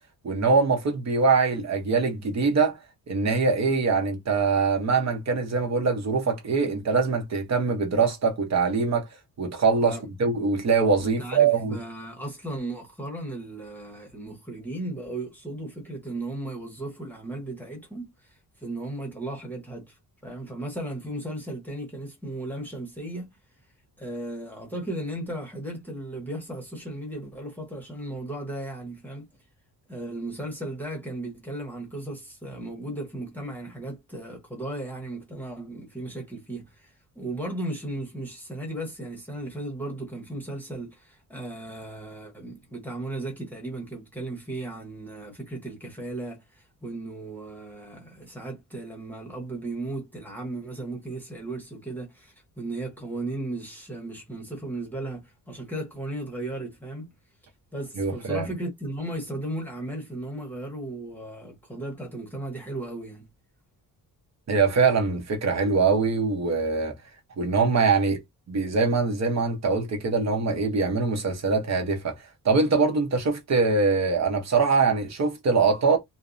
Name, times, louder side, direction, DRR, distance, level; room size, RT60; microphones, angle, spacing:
voice 1, 0.2-2.8 3.1-9.1 9.4-11.8 58.0-58.5 64.5-66.9 67.4-68.2 68.5-72.1 72.4-76.0, right 4 dB, 45° right, 0.8 m, -23 dB
voice 2, 11.0-23.4 24.0-29.3 29.9-57.1 57.7-63.3, right 1 dB, 5° left, 1.0 m, -36 dB
2.6 x 2.1 x 2.5 m
cardioid pair, 125°, 38 cm